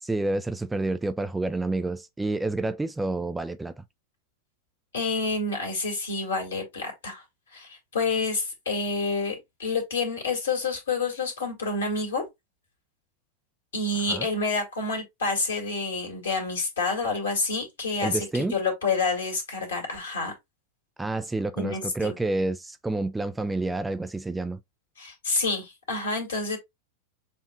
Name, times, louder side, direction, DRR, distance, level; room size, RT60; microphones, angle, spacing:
voice 1, 0.0-3.8 14.1-14.3 18.0-18.6 21.0-24.6, right 2 dB, 10° right, 0.3 m, -29 dB
voice 2, 4.9-7.2 7.5-12.2 13.7-20.3 21.6-22.2 25.0-26.6, left 3 dB, 65° left, 2.1 m, -28 dB
6.8 x 2.6 x 2.3 m
figure-of-eight pair, 90°, 0 cm